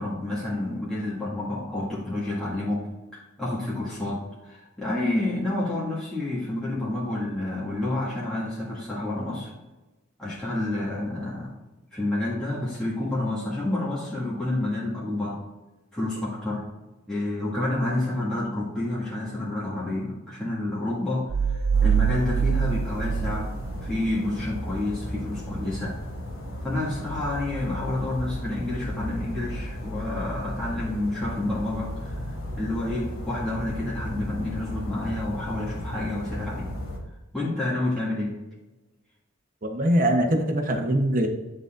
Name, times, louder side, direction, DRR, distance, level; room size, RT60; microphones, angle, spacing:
voice 1, 0.0-9.5 10.2-11.6 11.9-15.4 15.9-16.6 17.1-23.5 23.8-26.0 26.6-32.1 32.6-36.7 37.3-38.4, left 1 dB, 5° left, -10 dB, 1.6 m, -29 dB
sound 1, 21.3-24.1, right 7 dB, 70° right, 0.5 m, -24 dB
sound 2, 21.7-37.0, left 1 dB, 70° left, 1.6 m, -35 dB
voice 2, 39.6-41.3, right 1 dB, 40° right, 3 dB, 0.9 m, -22 dB
10.5 x 3.9 x 2.5 m, 1.1 s
head